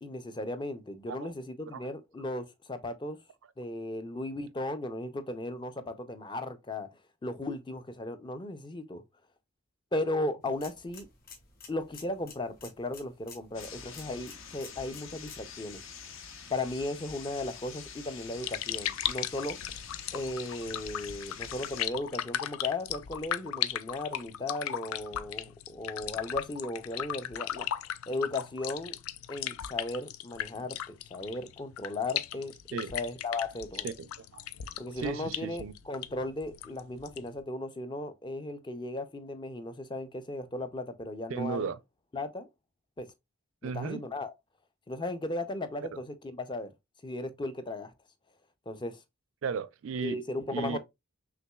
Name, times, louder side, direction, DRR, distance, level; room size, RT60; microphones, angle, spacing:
voice 1, 0.0-3.2 3.6-6.9 7.2-9.0 9.9-11.1 11.7-15.8 16.5-19.6 20.1-27.7 28.1-29.0 29.3-33.9 34.8-41.7 42.1-42.5 43.0-43.1 43.6-44.3 44.9-46.7 47.0-47.9 48.7-49.0 50.0-50.8, left 2 dB, 20° left, 0.4 m, -36 dB
sound 1, 10.4-15.5, left 5 dB, 45° left, 1.5 m, -52 dB
sound 2, 13.5-21.9, left 6 dB, 60° left, 0.7 m, -46 dB
sound 3, 18.2-37.4, left 11 dB, 80° left, 0.4 m, -37 dB
voice 2, 33.8-34.5 34.9-35.7 41.3-41.8 43.6-44.0 49.4-50.2 50.5-50.8, right 5 dB, 65° right, 0.4 m, -35 dB
5.8 x 3.0 x 2.2 m
head